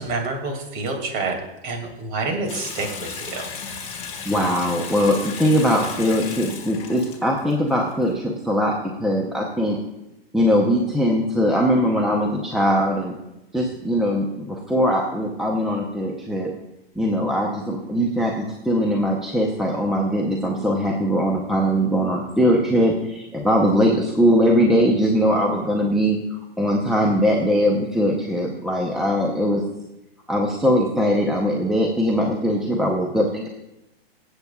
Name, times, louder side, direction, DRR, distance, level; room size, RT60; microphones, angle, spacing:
voice 1, 0.0-1.4 1.6-3.5, right 3 dB, 35° right, 3 dB, 2.4 m, -28 dB
Water tap faucet / Sink (filling or washing) / Bathtub (filling or washing), 2.5-8.1, left 5 dB, 20° left, 1.8 m, -35 dB
voice 2, 4.2-9.8 10.3-13.2 13.5-16.5 17.0-26.2 26.6-29.6 30.3-33.5, equal, ahead, -1 dB, 0.7 m, -21 dB
23.5 x 8.1 x 2.3 m, 0.92 s
hypercardioid pair, 145°, 31 cm